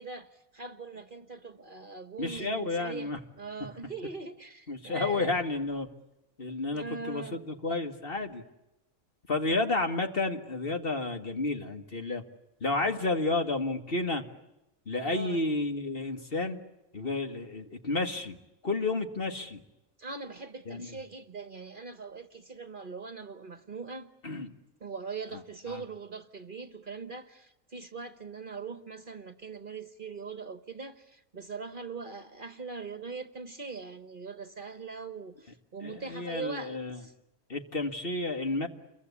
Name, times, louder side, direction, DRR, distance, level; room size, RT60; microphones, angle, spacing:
voice 1, 0.0-3.1 3.4-5.3 6.7-7.4 15.0-15.5 20.0-24.1 24.8-37.1, right 4 dB, 40° right, 1.3 m, -41 dB
voice 2, 2.2-3.2 4.7-5.9 6.4-8.4 9.3-12.2 12.6-14.2 14.9-16.6 16.9-18.4 18.6-19.6 20.7-21.0 24.2-24.5 25.7-25.8 35.8-37.0 37.5-38.7, left 2 dB, 45° left, 2.1 m, -31 dB
29.5 x 23.0 x 8.4 m
omnidirectional pair, 1.4 m